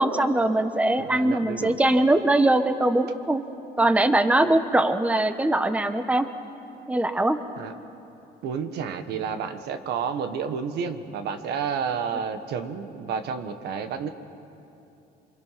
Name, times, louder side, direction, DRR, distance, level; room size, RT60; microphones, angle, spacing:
voice 1, 0.0-3.4 3.8-6.3 6.9-7.4, right 1 dB, 10° right, 9 dB, 1.0 m, -21 dB
voice 2, 1.0-1.8 7.6-7.7 8.4-14.1, right 6 dB, 75° right, 9 dB, 1.5 m, -30 dB
28.0 x 25.5 x 5.9 m, 2.8 s
cardioid pair, 110°, 17 cm